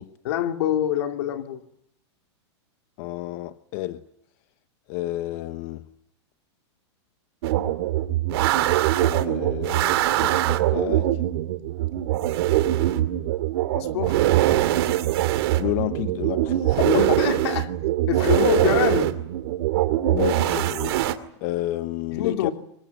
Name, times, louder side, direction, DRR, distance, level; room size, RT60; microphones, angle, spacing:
voice 1, 0.2-1.6 13.7-14.2 16.8-17.7 18.1-19.1 22.1-22.5, left 10 dB, 65° left, 2.7 m, -25 dB
voice 2, 3.0-4.0 4.9-5.9 9.0-11.1 15.6-17.2 18.6-18.9 20.1-21.0 21.4-22.5, left 16 dB, 45° left, 1.0 m, -30 dB
sound 1, 7.4-21.1, right 14 dB, 60° right, 2.3 m, -22 dB
25.0 x 21.5 x 9.4 m
supercardioid pair, 150°, 15 cm